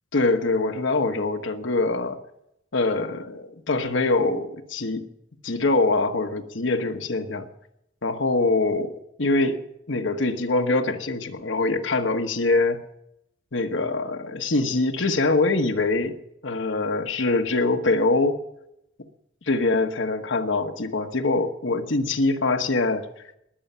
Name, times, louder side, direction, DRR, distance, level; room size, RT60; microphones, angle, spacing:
voice 1, 0.1-2.2 2.7-5.0 5.4-7.5 8.0-9.6 9.9-12.8 13.5-16.2 16.4-18.4 19.5-23.1, left 3 dB, 65° left, 7 dB, 1.2 m, -24 dB
20.5 x 8.6 x 5.6 m, 0.79 s
head